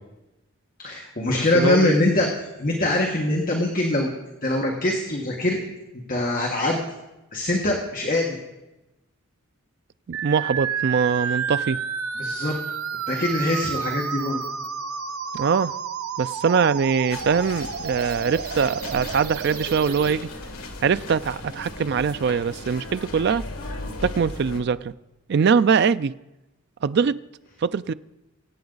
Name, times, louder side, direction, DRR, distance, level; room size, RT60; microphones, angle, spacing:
voice 1, 0.8-2.3 2.6-4.1 4.4-5.6 6.1-6.8 7.3-8.4 12.2-12.5 13.1-14.4, left 2 dB, 40° left, 1.6 m, -23 dB
voice 2, 1.5-1.9 10.1-11.8 15.3-15.7 16.2-20.3 20.8-23.5 24.0-24.9 25.3-26.1 26.8-27.2 27.6-27.9, right 6 dB, 50° right, 0.4 m, -22 dB
sound 1, 10.1-20.1, right 7 dB, 85° right, 0.7 m, -31 dB
sound 2, 17.1-24.6, left 2 dB, 85° left, 1.6 m, -37 dB
24.0 x 8.6 x 4.0 m
head